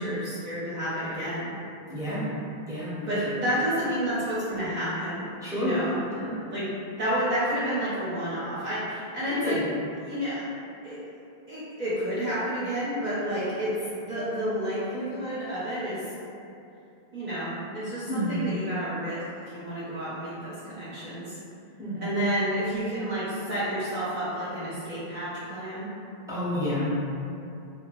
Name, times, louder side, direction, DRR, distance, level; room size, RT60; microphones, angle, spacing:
voice 1, 0.0-1.5 3.1-5.3 5.5-6.0 6.5-6.7 7.0-9.5 10.0-10.4 10.8-11.0 11.5-13.7 14.0-16.0 17.1-19.2 19.5-21.4 22.0-25.9, equal, 50° right, -11 dB, 0.7 m, -30 dB
voice 2, 1.9-2.3 2.7-3.4 5.4-5.8 6.2-6.3 9.3-9.6 18.1-18.5 21.8-22.1 26.3-27.0, equal, 5° right, -10 dB, 0.5 m, -30 dB
2.8 x 2.1 x 2.8 m, 2.7 s
omnidirectional pair, 1.1 m